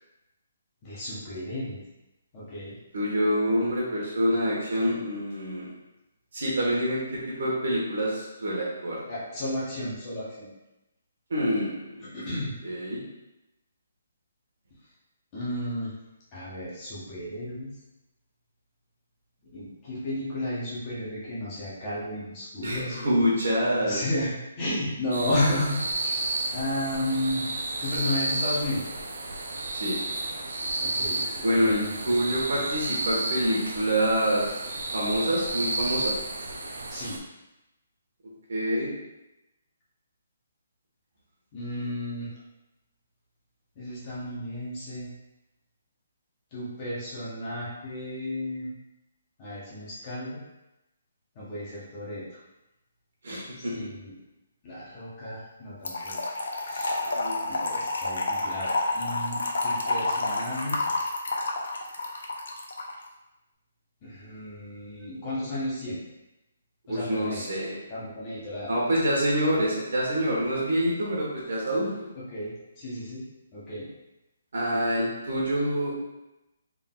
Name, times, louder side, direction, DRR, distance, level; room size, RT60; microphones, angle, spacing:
voice 1, 0.8-1.8 2.3-2.7 9.0-10.5 12.1-12.5 15.3-15.9 16.3-17.7 19.5-23.1 23.8-24.3 24.6-26.2 26.5-27.4 27.8-28.9 30.8-31.9 32.5-32.6 36.9-37.2 41.5-42.3 43.8-45.1 46.5-48.7 49.4-50.4 51.3-52.2 53.6-54.1 54.6-56.2 56.6-57.0 57.5-60.8 64.0-66.0 66.9-67.5 67.9-68.7 72.3-73.2 73.5-73.9, left 1 dB, 20° left, -8 dB, 1.0 m, -33 dB
voice 2, 2.9-5.7 6.3-9.0 11.3-12.0 12.3-13.0 22.6-24.0 29.7-30.0 31.4-34.5 34.9-36.2 38.5-38.9 53.2-53.9 57.0-57.4 66.9-67.8 68.7-72.1 74.5-75.9, equal, 60° right, -5 dB, 1.3 m, -26 dB
sound 1, 25.1-37.2, right 2 dB, 80° right, 0.5 m, -32 dB
Trickle dribble / Fill (with liquid), 55.8-62.9, left 2 dB, 80° left, 0.6 m, -29 dB
3.7 x 3.7 x 2.4 m, 0.95 s
hypercardioid pair, 175°, 0 cm